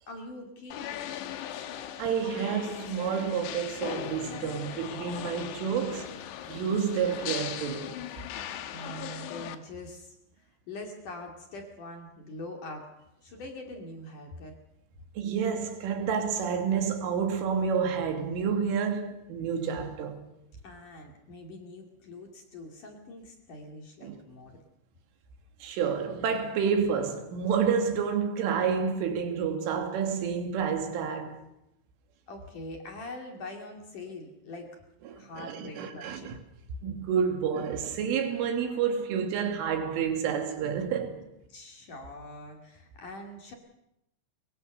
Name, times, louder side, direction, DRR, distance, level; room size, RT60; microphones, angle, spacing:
voice 1, 0.1-0.9 8.7-12.9 13.2-14.5 20.6-24.6 32.3-34.8 35.2-36.3 41.5-43.5, left 2 dB, 45° left, 3.4 m, -43 dB
sound 1, 0.7-9.6, left 10 dB, 65° left, 3.2 m, -39 dB
voice 2, 2.0-6.2 6.5-8.0 15.2-20.2 24.0-24.2 25.6-31.4 35.1-36.4 36.8-41.2, right 6 dB, 75° right, 5.0 m, -29 dB
23.5 x 23.0 x 6.7 m
omnidirectional pair, 5.9 m